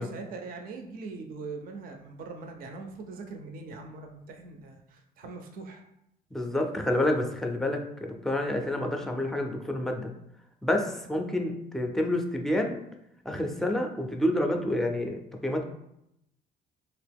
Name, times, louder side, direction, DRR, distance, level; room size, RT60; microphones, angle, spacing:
voice 1, 0.0-5.8, right 3 dB, 60° right, 4 dB, 0.5 m, -41 dB
voice 2, 6.3-10.1 10.6-12.8 13.2-15.6, left 1 dB, ahead, 3 dB, 0.4 m, -28 dB
2.9 x 2.8 x 3.4 m, 0.80 s
cardioid pair, 110°, 17 cm